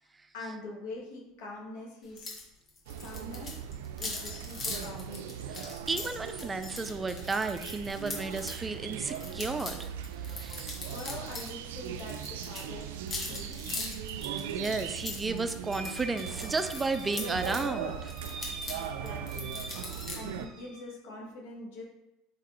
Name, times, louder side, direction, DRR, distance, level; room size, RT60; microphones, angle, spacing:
voice 1, 0.3-2.4 3.0-3.6 4.0-5.2 10.5-10.6 10.9-13.8 18.8-19.6 19.9-21.8, left 2 dB, 85° left, -3 dB, 1.5 m, -44 dB
sound 1, 2.2-2.4 2.7-8.6 9.0-11.5 11.8-17.6 18.1-20.2, left 3 dB, 30° left, 1.3 m, -41 dB
sound 2, 2.9-20.5, right 8 dB, 90° right, 0.3 m, -39 dB
voice 2, 5.5-9.9 10.2-10.7 14.2-18.1, right 3 dB, 15° right, 9 dB, 0.4 m, -33 dB
sound 3, 15.6-20.8, right 3 dB, 35° right, 0.9 m, -45 dB
4.5 x 3.7 x 3.0 m, 0.90 s
supercardioid pair, 120°, 0 cm